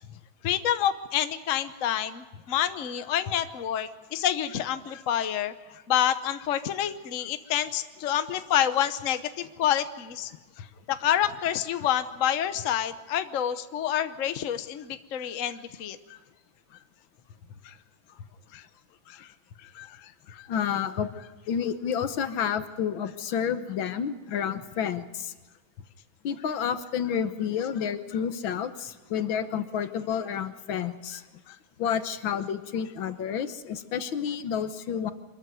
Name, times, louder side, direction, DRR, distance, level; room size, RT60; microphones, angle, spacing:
voice 1, 0.4-5.5 5.9-10.3 10.6-16.2 17.6-17.7 18.5-18.6 19.1-19.3 19.6-20.5 31.5-31.6, left 10 dB, 50° left, 10 dB, 1.1 m, -28 dB
voice 2, 20.5-21.1 21.5-25.3 26.2-31.2 31.8-35.1, left 8 dB, 75° left, 11 dB, 1.8 m, -30 dB
24.5 x 14.0 x 9.4 m, 1.2 s
omnidirectional pair, 2.1 m